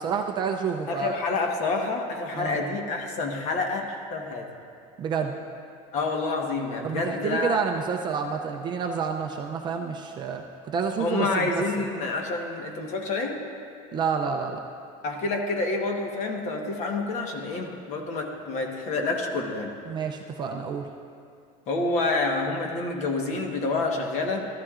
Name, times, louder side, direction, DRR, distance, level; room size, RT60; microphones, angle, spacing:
voice 1, 0.0-1.2 2.3-2.6 5.0-5.4 6.8-11.8 13.9-14.6 19.9-20.9, right 6 dB, 25° right, 3 dB, 0.4 m, -29 dB
voice 2, 0.9-4.5 5.9-7.6 11.0-13.4 15.0-19.7 21.7-24.5, left 3 dB, 40° left, 2 dB, 1.2 m, -28 dB
14.0 x 13.5 x 2.5 m, 2.5 s
cardioid pair, 170°, 18 cm